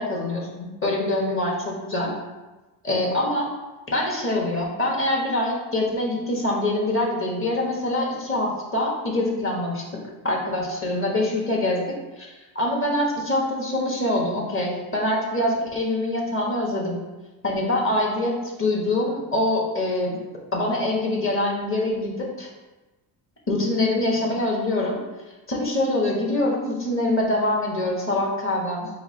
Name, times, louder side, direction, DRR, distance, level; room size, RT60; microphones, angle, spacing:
voice 1, 0.0-2.1 2.8-3.5 3.9-9.8 10.2-11.8 12.2-17.0 17.4-18.3 18.6-20.1 20.5-22.5 23.5-25.0 25.5-28.9, left 1 dB, 30° left, -2 dB, 1.2 m, -24 dB
4.5 x 2.1 x 4.2 m, 1.1 s
cardioid pair, 95°, 44 cm